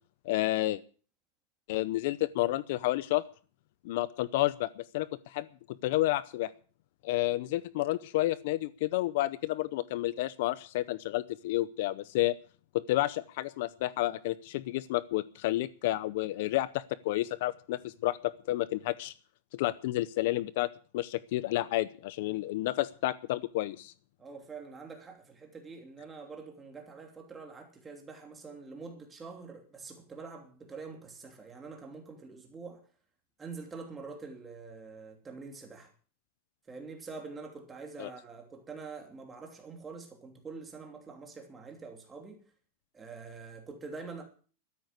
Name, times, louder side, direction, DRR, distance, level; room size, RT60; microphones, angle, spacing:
voice 1, 0.2-0.8 1.7-3.2 3.8-6.5 7.0-12.4 12.7-19.1 19.5-23.9 38.0-38.1, left 16 dB, 50° left, 0.6 m, -30 dB
voice 2, 24.2-32.8 33.4-35.9 36.7-42.4 42.9-44.2, right 4 dB, 10° right, 2.9 m, -45 dB
13.0 x 9.9 x 8.0 m
supercardioid pair, 170°, 0 cm